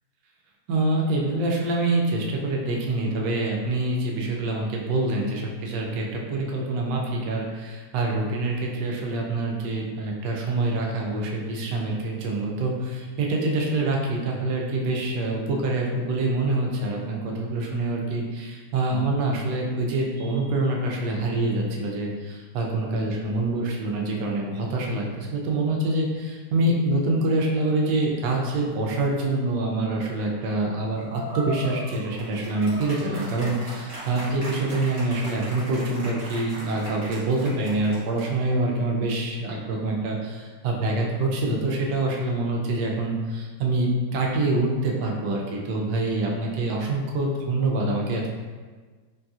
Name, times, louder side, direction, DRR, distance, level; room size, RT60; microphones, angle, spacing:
voice 1, 0.7-48.3, right 2 dB, 85° right, -1 dB, 1.2 m, -26 dB
sound 1, 31.0-38.5, right 1 dB, 35° right, 0.7 m, -38 dB
3.7 x 2.7 x 2.3 m, 1.4 s
omnidirectional pair, 1.8 m